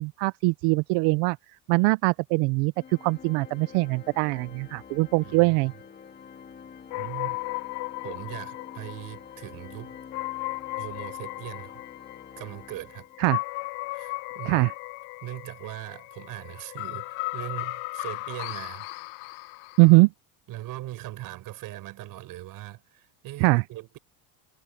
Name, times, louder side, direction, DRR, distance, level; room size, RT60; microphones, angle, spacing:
voice 1, 0.0-1.4 1.7-2.7 3.0-5.7 13.2-13.4 14.4-14.7 19.8-20.1 23.4-23.6, right 26 dB, 70° right, 0.5 m, -22 dB
Organ, 2.8-13.4, left 7 dB, 20° left, 2.4 m, -47 dB
voice 2, 5.2-5.6 6.9-7.4 8.0-10.0 10.8-11.8 12.4-13.1 13.9-14.7 15.2-18.9 20.5-24.0, right 16 dB, 50° right, 6.9 m, -40 dB
sound 1, 6.9-20.0, left 24 dB, 75° left, 0.8 m, -36 dB
cardioid pair, 170°, 44 cm